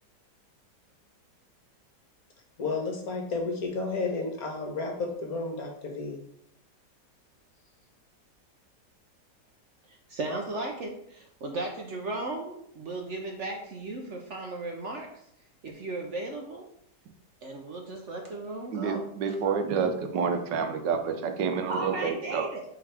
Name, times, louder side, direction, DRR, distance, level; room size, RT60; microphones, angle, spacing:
voice 1, 2.6-6.2, left 3 dB, 60° left, 1 dB, 1.5 m, -32 dB
voice 2, 9.9-15.2 15.6-16.6 17.4-19.1 21.7-22.6, right 2 dB, 55° right, 2 dB, 0.9 m, -36 dB
voice 3, 18.7-22.5, right 6 dB, 85° right, 6 dB, 1.4 m, -28 dB
8.4 x 3.7 x 3.4 m, 0.72 s
omnidirectional pair, 1.9 m